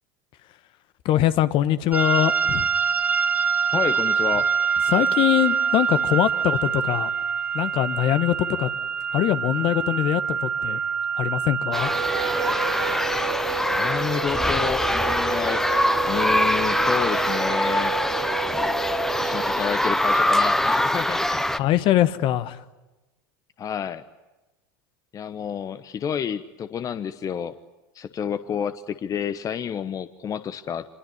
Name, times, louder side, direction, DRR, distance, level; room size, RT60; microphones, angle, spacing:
voice 1, 1.0-2.7 4.9-7.1 7.5-8.7 9.1-10.8 11.2-11.9 21.5-22.6, left 13 dB, 50° left, 13 dB, 1.3 m, -22 dB
sound 1, 1.9-13.0, right 6 dB, 15° right, 2.5 m, -25 dB
voice 2, 3.7-4.5 13.7-15.6 16.1-17.9 19.2-21.5 23.6-24.0 25.1-27.5 27.9-30.9, left 8 dB, 30° left, 12 dB, 1.0 m, -30 dB
sound 2, 11.7-21.6, left 1 dB, 5° left, 1.0 m, -23 dB
sound 3, 11.8-19.6, right 12 dB, 80° right, 2.9 m, -32 dB
25.5 x 21.5 x 9.6 m, 1.1 s
hypercardioid pair, 95°, 11 cm